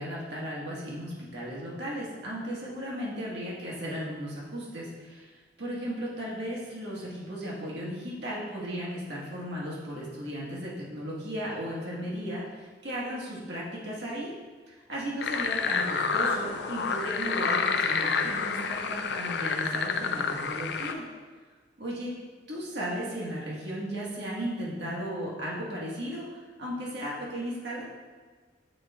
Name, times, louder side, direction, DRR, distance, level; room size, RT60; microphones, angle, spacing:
voice 1, 0.0-5.3 5.6-14.3 14.7-21.0 21.8-22.1 22.5-27.9, equal, 70° right, -5 dB, 1.7 m, -35 dB
sound 1, 15.2-20.9, left 5 dB, 65° left, 0.4 m, -29 dB
8.0 x 4.1 x 3.5 m, 1.4 s
head